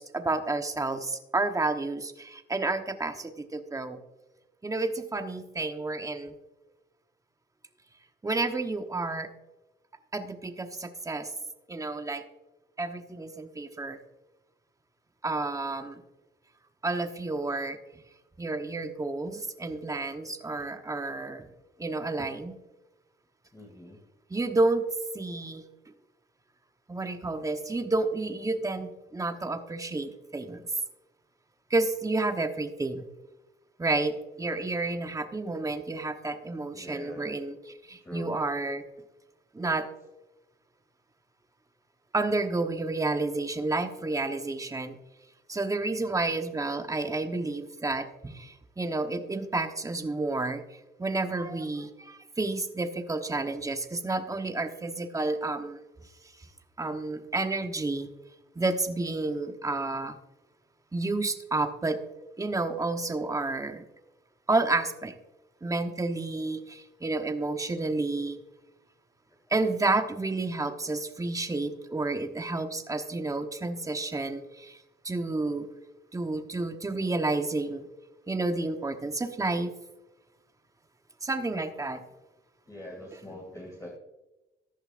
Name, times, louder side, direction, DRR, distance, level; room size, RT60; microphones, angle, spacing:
voice 1, 0.0-4.0 4.6-6.3 8.2-9.3 10.1-11.3 11.7-12.2 12.8-14.0 15.2-16.0 16.8-17.8 18.4-21.5 21.8-22.5 24.3-24.8 25.1-25.6 26.9-30.6 31.7-33.0 33.8-38.8 39.5-39.9 42.1-45.0 45.5-50.6 51.0-55.8 56.8-58.1 58.5-60.2 60.9-62.0 62.4-63.8 64.5-65.2 65.6-68.4 69.5-74.8 75.0-75.7 76.1-77.8 78.3-79.7 81.2-82.0, right 2 dB, 15° right, 7 dB, 1.1 m, -30 dB
voice 2, 23.5-24.0 36.7-37.3 38.0-38.4 82.7-84.0, left 1 dB, 15° left, -2 dB, 2.5 m, -43 dB
14.5 x 11.0 x 2.6 m, 1.0 s
cardioid pair, 90°, 20 cm